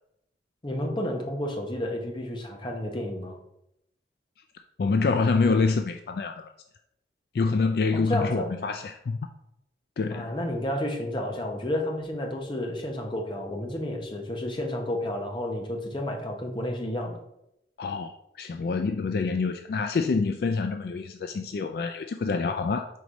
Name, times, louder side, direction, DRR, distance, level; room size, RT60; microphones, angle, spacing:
voice 1, 0.6-3.4 7.9-8.5 10.1-17.2, left 1 dB, 25° left, 0.8 m, -31 dB
voice 2, 4.8-6.5 7.3-9.2 10.0-10.3 17.8-18.1 18.4-22.9, left 4 dB, 55° left, 0.3 m, -26 dB
4.7 x 4.0 x 5.0 m
head